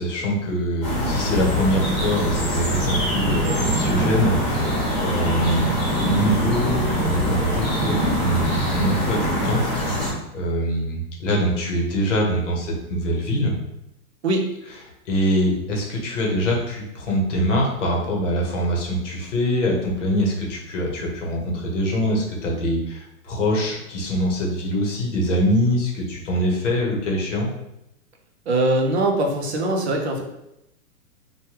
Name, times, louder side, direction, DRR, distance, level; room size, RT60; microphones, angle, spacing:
voice 1, 0.0-9.6 10.3-13.5 15.1-27.5, equal, 50° left, 0 dB, 0.9 m, -24 dB
sound 1, 0.8-10.1, equal, 25° left, 1.2 m, -23 dB
sound 2, 2.3-8.7, equal, 30° right, 1.0 m, -34 dB
voice 2, 28.5-30.2, right 2 dB, 50° right, 2 dB, 0.5 m, -21 dB
3.1 x 2.2 x 2.8 m, 0.84 s
hypercardioid pair, 180°, 46 cm